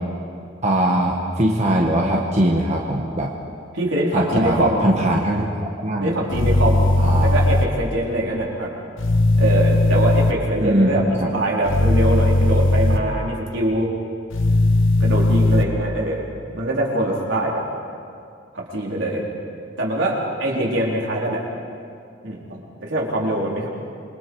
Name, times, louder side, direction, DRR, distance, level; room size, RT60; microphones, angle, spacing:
voice 1, 0.6-3.3 4.1-6.1 7.0-7.4 10.6-11.2, right 1 dB, 35° right, -1 dB, 1.5 m, -21 dB
voice 2, 3.7-4.9 6.0-8.7 9.4-13.9 15.0-17.6 18.5-19.3 19.8-21.4 22.2-23.7, right 1 dB, 70° right, -3 dB, 4.0 m, -23 dB
sound 1, 6.3-7.6 9.0-10.3 11.7-13.0 14.3-15.6, left 1 dB, 85° left, 1.2 m, -17 dB
27.0 x 23.0 x 4.8 m, 2.4 s
head